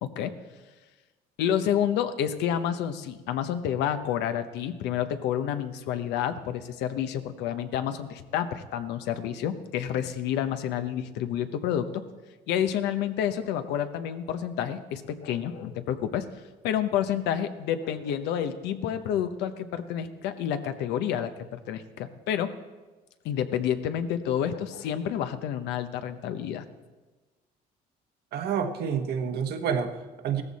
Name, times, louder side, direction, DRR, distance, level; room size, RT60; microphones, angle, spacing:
voice 1, 0.0-0.3 1.4-12.0 12.5-16.3 16.6-22.5 23.2-26.6, left 9 dB, 90° left, 9 dB, 0.9 m, -29 dB
voice 2, 28.3-30.4, right 7 dB, 70° right, 6 dB, 1.2 m, -29 dB
16.0 x 14.0 x 4.2 m, 1.2 s
cardioid pair, 110°, 17 cm